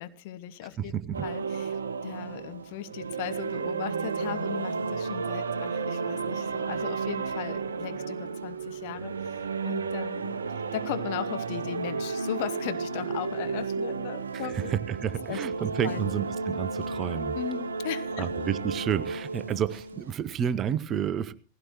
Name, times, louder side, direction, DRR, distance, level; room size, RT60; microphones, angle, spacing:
voice 1, 0.0-0.9 1.2-14.7 15.3-15.4 15.8-16.1 17.3-18.3, left 12 dB, 50° left, 11 dB, 1.0 m, -37 dB
voice 2, 0.8-1.3 14.3-17.4 18.2-21.3, right 9 dB, 30° right, 15 dB, 0.8 m, -30 dB
sound 1, 1.1-20.1, right 4 dB, 70° right, 0.7 m, -33 dB
18.0 x 16.0 x 3.0 m, 0.36 s
figure-of-eight pair, 90°, 0 cm